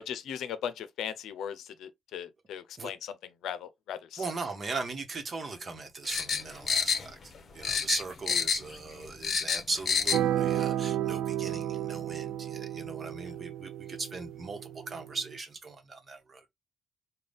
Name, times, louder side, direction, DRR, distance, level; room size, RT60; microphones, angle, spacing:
voice 1, 0.0-3.1 3.4-4.2, left 9 dB, 80° left, 0.6 m, -38 dB
voice 2, 4.2-7.2 7.5-16.5, right 3 dB, 40° right, 1.1 m, -38 dB
sound 1, 6.0-7.4 7.6-8.8 9.0-10.2 10.5-10.6, left 6 dB, 45° left, 0.8 m, -28 dB
sound 2, 10.1-15.4, right 12 dB, 85° right, 0.3 m, -32 dB
3.9 x 2.3 x 3.4 m
cardioid pair, 90°, 0 cm